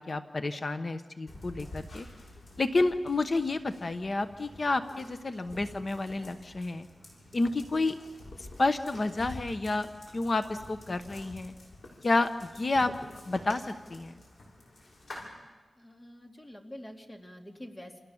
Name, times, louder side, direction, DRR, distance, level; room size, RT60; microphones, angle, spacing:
voice 1, 0.0-2.1 2.6-6.9 7.3-7.9 8.4-9.9 10.1-11.5 12.0-12.9 13.3-14.2, left 2 dB, 35° left, 9 dB, 1.0 m, -30 dB
sound 1, 1.3-15.2, left 1 dB, 60° left, 7.1 m, -49 dB
voice 2, 15.8-18.0, left 1 dB, 15° left, 3 dB, 2.6 m, -46 dB
28.5 x 28.0 x 7.2 m, 1.3 s
wide cardioid pair, 155°, 0 cm